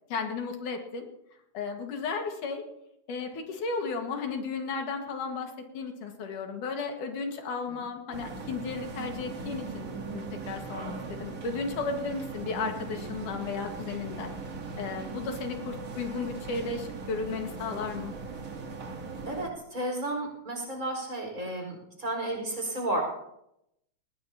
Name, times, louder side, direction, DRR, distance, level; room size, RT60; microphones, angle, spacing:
voice 1, 0.1-1.1 1.5-2.6 3.1-14.3 14.8-18.1, left 4 dB, 85° left, 3 dB, 3.3 m, -34 dB
sound 1, 8.1-19.5, right 4 dB, 45° right, 1.1 m, -39 dB
voice 2, 19.3-23.0, right 1 dB, 25° right, 0 dB, 5.2 m, -32 dB
20.0 x 20.0 x 2.9 m, 0.80 s
omnidirectional pair, 3.5 m